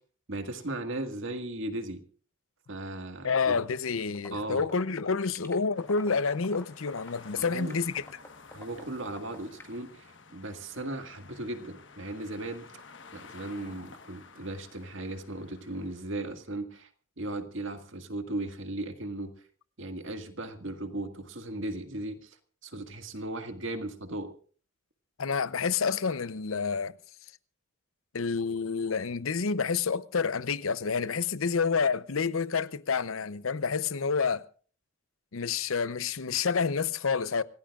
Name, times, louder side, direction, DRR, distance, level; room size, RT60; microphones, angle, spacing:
voice 1, 0.3-2.0 2.7-3.6 4.3-4.7 7.4-7.7 8.5-10.1 10.3-12.7 13.1-16.9 17.2-19.3 19.8-22.4 22.6-24.3, right 2 dB, 65° right, 1.8 m, -37 dB
voice 2, 3.2-8.0 25.2-26.9 28.1-34.4 35.3-37.4, left 5 dB, 85° left, 0.7 m, -28 dB
sound 1, 4.1-9.7, left 2 dB, 10° left, 1.9 m, -47 dB
sound 2, 5.7-16.3, left 4 dB, 60° left, 1.3 m, -52 dB
26.5 x 16.5 x 2.4 m
head